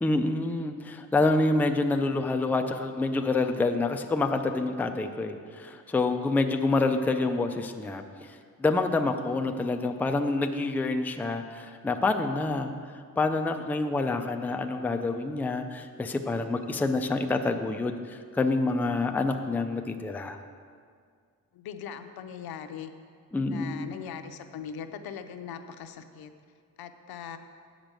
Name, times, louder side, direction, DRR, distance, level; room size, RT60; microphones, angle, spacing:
voice 1, 0.0-20.4 23.3-24.0, left 3 dB, 5° left, 6 dB, 0.3 m, -27 dB
voice 2, 21.5-22.9 23.5-26.3 26.8-27.4, left 7 dB, 85° left, 9 dB, 0.7 m, -40 dB
8.8 x 5.2 x 7.5 m, 2.1 s
cardioid pair, 140°, 36 cm